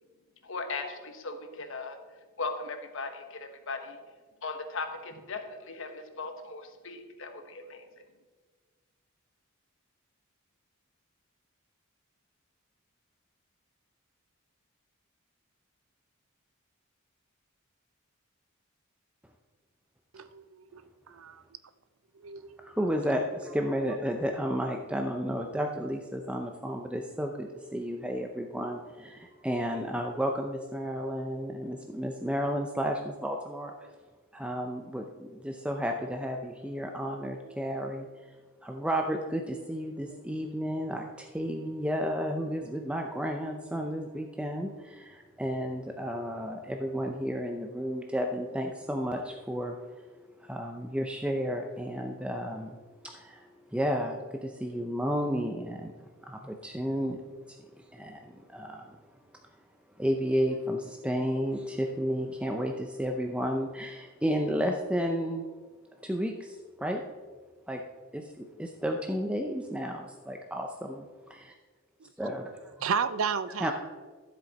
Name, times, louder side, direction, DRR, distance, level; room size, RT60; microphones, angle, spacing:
voice 1, 0.4-2.0 2.4-4.0 4.4-7.8, left 3 dB, 65° left, 1.2 m, -38 dB
voice 2, 20.1-20.8 21.1-21.4 22.2-22.6 72.8-73.7, right 6 dB, 70° right, 0.5 m, -32 dB
voice 3, 22.6-33.7 34.3-38.1 38.6-49.8 50.4-52.8 53.1-57.2 57.5-59.0 60.0-65.5 66.0-67.0 67.7-67.8 68.1-71.5 72.2-72.6 73.6-73.7, equal, 5° right, 0.5 m, -32 dB
12.5 x 7.7 x 4.1 m
head